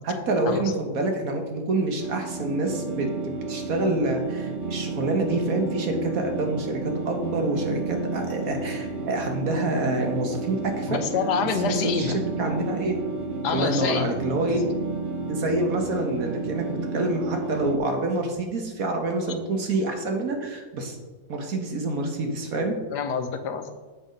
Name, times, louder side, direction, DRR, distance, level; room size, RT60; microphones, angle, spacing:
voice 1, 0.0-11.0 11.6-13.0 13.5-14.6 15.3-21.0 21.3-22.8, right 2 dB, 60° right, 3 dB, 1.6 m, -27 dB
sound 1, 2.0-17.8, right 3 dB, 40° right, 0.8 m, -31 dB
voice 2, 10.9-12.2 13.4-14.1 14.5-14.6 22.9-23.7, left 6 dB, 85° left, 8 dB, 1.4 m, -27 dB
7.8 x 5.8 x 5.2 m, 1.3 s
omnidirectional pair, 1.7 m